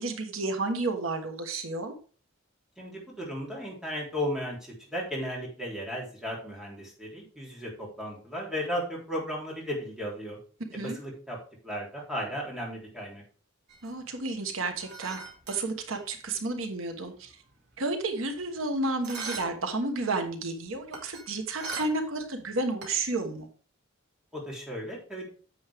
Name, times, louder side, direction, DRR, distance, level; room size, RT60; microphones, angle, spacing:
voice 1, 0.0-1.9 10.7-11.0 13.8-15.2 15.5-17.3 17.8-23.5, right 2 dB, 80° right, 5 dB, 1.3 m, -31 dB
voice 2, 2.8-10.4 10.7-11.4 11.6-13.2 24.3-25.3, equal, 5° right, -4 dB, 3.4 m, -35 dB
sound 1, 13.7-16.4 16.6-16.7 17.0-18.6 19.0-19.7 20.0-22.2 22.5-23.3, right 4 dB, 55° right, 2.4 m, -41 dB
9.5 x 7.1 x 3.5 m, 0.40 s
head